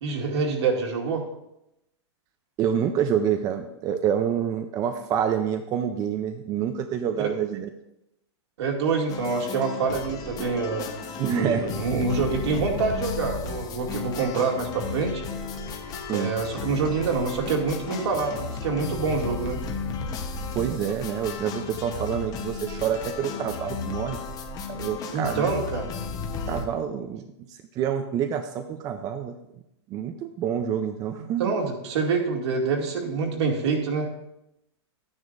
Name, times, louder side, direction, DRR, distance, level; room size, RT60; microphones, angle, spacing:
voice 1, 0.0-1.3 8.6-10.9 11.3-15.2 16.1-19.6 25.1-25.9 31.4-34.1, right 4 dB, 70° right, 0 dB, 2.4 m, -26 dB
voice 2, 2.6-7.7 11.2-11.6 16.1-16.3 20.5-24.2 24.7-25.6 26.5-27.2 27.5-29.3 29.9-31.5, right 8 dB, 25° right, 6 dB, 0.5 m, -27 dB
sound 1, 9.1-26.7, left 4 dB, 25° left, 1.0 m, -34 dB
12.0 x 9.6 x 2.6 m, 0.85 s
hypercardioid pair, 140°, 15 cm